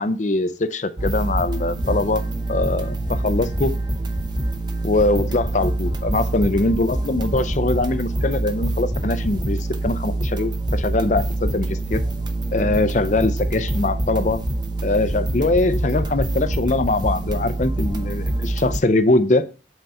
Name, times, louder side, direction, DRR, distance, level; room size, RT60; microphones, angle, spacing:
voice 1, 0.0-2.2 2.5-3.7 4.8-12.0 12.5-14.4 14.8-19.5, left 2 dB, 40° left, 0.6 m, -22 dB
sound 1, 1.0-18.8, right 2 dB, 25° right, 0.7 m, -25 dB
7.8 x 4.0 x 4.2 m
head